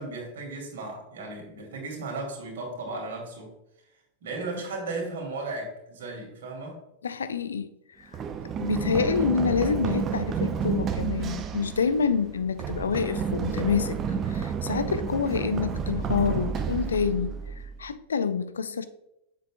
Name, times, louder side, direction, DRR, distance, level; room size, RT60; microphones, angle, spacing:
voice 1, 0.0-3.5 4.2-6.8, right 3 dB, 60° right, 2.5 m, -35 dB
voice 2, 7.0-7.7 8.0-8.1 8.6-14.0 14.3-17.4 17.8-18.9, left 6 dB, 70° left, 0.5 m, -27 dB
Run, 8.1-17.9, right 6 dB, 30° right, 0.6 m, -30 dB
7.7 x 6.7 x 2.3 m
figure-of-eight pair, 90°, 0 cm